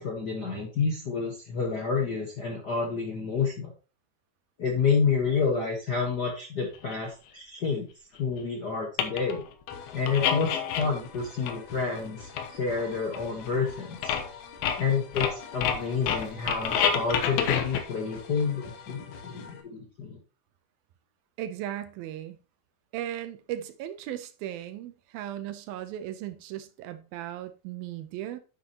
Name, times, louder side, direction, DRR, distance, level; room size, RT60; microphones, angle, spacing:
voice 1, 0.0-3.7 4.6-7.9 8.2-9.4 9.9-14.1 14.8-20.2, left 5 dB, 75° left, 0.9 m, -29 dB
sound 1, 6.9-7.0 8.4-8.5 9.0-9.4 9.7-11.2 11.5-12.1 12.4-12.5 12.8-12.9 13.1-13.7 14.0-14.3 14.6-17.8, left 8 dB, 90° left, 3.0 m, -28 dB
sound 2, 9.7-19.6, left 5 dB, 60° left, 2.0 m, -46 dB
voice 2, 21.4-22.4 22.9-28.4, right 12 dB, 80° right, 2.6 m, -37 dB
9.8 x 7.5 x 2.9 m
omnidirectional pair, 4.2 m